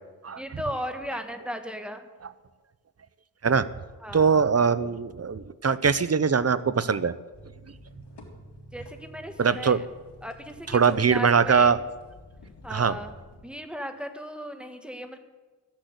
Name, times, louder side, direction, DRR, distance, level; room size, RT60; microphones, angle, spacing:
voice 1, 0.4-2.1 4.0-4.4 8.7-9.8 10.2-11.8 12.6-13.1 13.4-15.2, equal, 5° right, 6 dB, 1.7 m, -36 dB
voice 2, 4.1-7.1 9.4-9.8 10.7-11.8 12.7-13.0, right 6 dB, 40° right, 15 dB, 0.8 m, -22 dB
sound 1, 7.3-13.4, left 1 dB, 85° left, 3.3 m, -49 dB
14.0 x 10.5 x 8.1 m, 1.3 s
wide cardioid pair, 105°, 40 cm